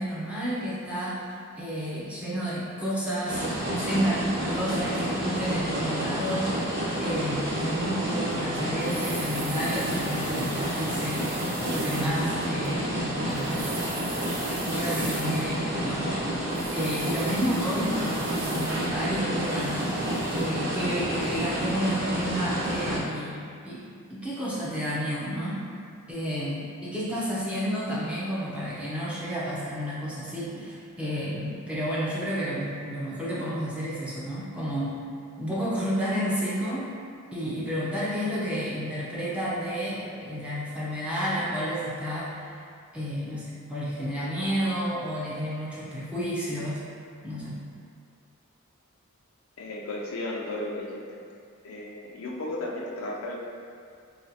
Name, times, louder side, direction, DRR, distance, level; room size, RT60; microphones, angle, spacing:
voice 1, 0.0-11.4 11.7-13.7 14.6-16.1 16.7-19.9 20.3-23.8 24.1-25.6 26.1-35.0 35.4-36.9 37.3-42.3 42.9-46.8 47.2-47.6, equal, 5° right, -9 dB, 0.6 m, -31 dB
sound 1, 3.2-23.0, equal, 55° right, 0.9 m, -29 dB
sound 2, 8.3-8.4 8.8-12.7 13.2-15.7 16.5-18.8 19.4-20.6 21.2-21.3, right 2 dB, 75° right, 1.1 m, -41 dB
voice 2, 49.6-51.2 51.6-53.4, left 1 dB, 70° left, -2 dB, 0.4 m, -34 dB
4.0 x 2.3 x 2.7 m, 2.3 s
head